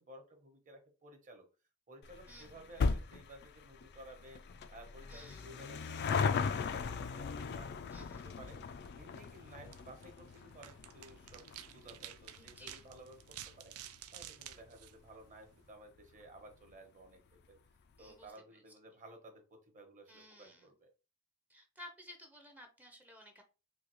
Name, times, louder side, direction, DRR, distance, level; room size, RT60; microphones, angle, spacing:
voice 1, 0.0-1.5 1.9-8.6 8.9-13.7 14.1-17.6 18.0-20.9, right 2 dB, 35° right, 3 dB, 1.0 m, -56 dB
sound 1, 2.0-14.8 15.1-15.2 16.0-16.1 16.3-16.4 16.7-16.8, left 5 dB, 50° left, 0.4 m, -39 dB
voice 2, 2.3-2.6 5.1-5.5 7.9-8.3 12.2-12.9 18.0-18.6 20.1-20.7 21.5-23.4, left 1 dB, 5° right, 4 dB, 0.6 m, -55 dB
sound 2, 8.7-15.7, right 11 dB, 80° right, 0.4 m, -53 dB
3.8 x 2.8 x 3.0 m, 0.31 s
head